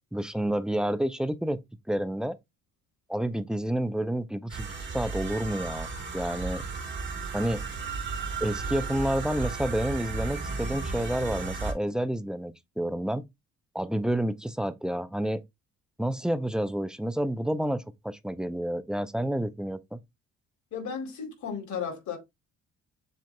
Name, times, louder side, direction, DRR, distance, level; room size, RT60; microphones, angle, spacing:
voice 1, 0.1-1.6 1.9-2.4 3.1-4.7 4.9-5.9 6.1-6.6 7.3-7.6 8.4-13.2 13.7-15.4 16.0-20.0, right 1 dB, ahead, 0.5 m, -29 dB
sound 1, 4.5-11.7, right 4 dB, 40° right, 1.5 m, -34 dB
voice 2, 20.7-22.2, left 6 dB, 70° left, 2.5 m, -34 dB
7.6 x 2.7 x 2.2 m
cardioid pair, 90°, 30 cm